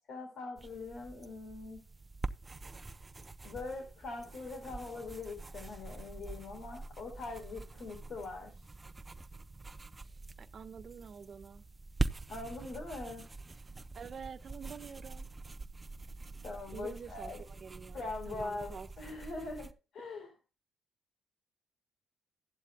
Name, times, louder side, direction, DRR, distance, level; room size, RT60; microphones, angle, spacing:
voice 1, 0.1-1.8 3.4-8.6 12.3-13.2 16.4-17.4 17.9-19.7 19.9-20.3, left 3 dB, 65° left, 4.1 m, -42 dB
sound 1, 0.6-19.7, right 3 dB, 20° right, 0.9 m, -44 dB
voice 2, 10.4-11.6 13.9-15.3 16.7-18.0 18.3-18.9, right 6 dB, 50° right, 1.3 m, -47 dB
15.0 x 11.5 x 2.2 m
cardioid pair, 90°, 0 cm